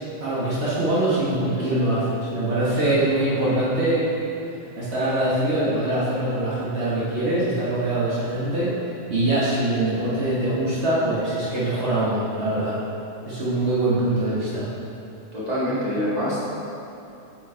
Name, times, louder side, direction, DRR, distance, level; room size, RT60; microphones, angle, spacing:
voice 1, 0.2-4.1 4.8-8.7 9.1-12.8 13.3-14.7, right 1 dB, 60° right, -10 dB, 1.4 m, -23 dB
voice 2, 15.3-16.6, equal, 30° right, -9 dB, 1.6 m, -26 dB
6.1 x 4.7 x 4.3 m, 2.8 s
omnidirectional pair, 1.3 m